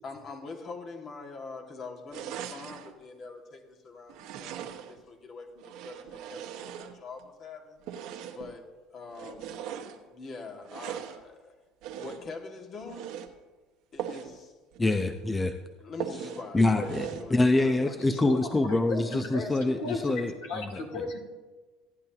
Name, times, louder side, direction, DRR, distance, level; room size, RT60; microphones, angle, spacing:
voice 1, 0.0-7.8 8.2-9.5 10.0-11.6 12.0-13.2 13.9-14.5 15.8-18.2, left 3 dB, 40° left, 2 dB, 2.1 m, -44 dB
sound 1, 2.1-2.9 4.1-5.0 5.6-7.2 7.8-8.5 9.1-10.0 10.6-11.2 11.8-12.3 12.8-13.3 14.0-14.3 14.7-14.8 15.2-15.3 16.0-16.5 16.8-17.3, right 9 dB, 65° right, 1.1 m, -39 dB
voice 2, 14.8-15.5 16.5-17.0 17.3-20.8, left 2 dB, 15° left, 8 dB, 0.7 m, -25 dB
voice 3, 18.7-19.5 19.8-21.2, left 3 dB, 70° left, 2 dB, 2.6 m, -35 dB
16.5 x 10.5 x 2.9 m, 1.3 s
hypercardioid pair, 85°, 0 cm